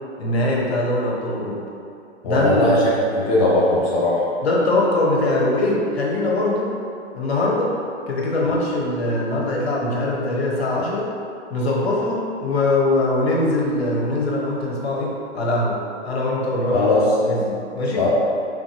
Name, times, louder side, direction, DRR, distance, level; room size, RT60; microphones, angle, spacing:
voice 1, 0.2-1.6 2.2-2.6 4.4-6.8 7.1-7.8 8.1-11.1 11.5-16.9 17.2-18.1, left 2 dB, 60° left, -3 dB, 1.0 m, -22 dB
voice 2, 2.2-2.8 3.2-4.2 16.7-17.1 18.0-18.1, left 2 dB, 30° left, -6 dB, 0.5 m, -19 dB
5.0 x 3.1 x 2.5 m, 2.5 s
figure-of-eight pair, 115°, 35 cm